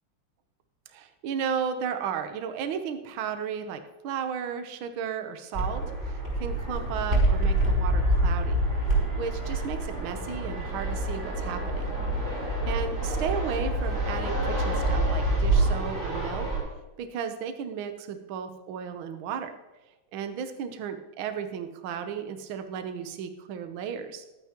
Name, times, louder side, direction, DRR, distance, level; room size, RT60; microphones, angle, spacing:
voice 1, 0.9-8.6 9.1-11.9 12.7-16.5 17.0-19.5 20.1-24.2, right 7 dB, 85° right, 8 dB, 1.1 m, -34 dB
Fixed-wing aircraft airplane, 5.5-16.6, right 1 dB, 20° right, 5.7 m, -26 dB
22.5 x 9.2 x 2.9 m, 1.1 s
omnidirectional pair, 3.3 m